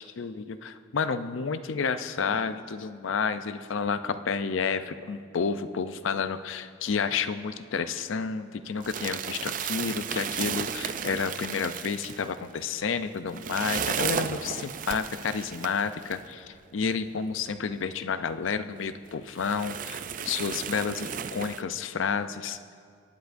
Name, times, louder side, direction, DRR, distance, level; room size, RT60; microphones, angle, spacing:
voice 1, 0.0-22.6, left 5 dB, 85° left, 11 dB, 0.5 m, -30 dB
sound 1, 8.8-16.2 17.1-17.2 17.5-17.6 18.3-18.4 18.8-18.9 19.4-21.6, right 7 dB, 45° right, 0.4 m, -34 dB
24.0 x 10.5 x 2.6 m, 2.2 s
head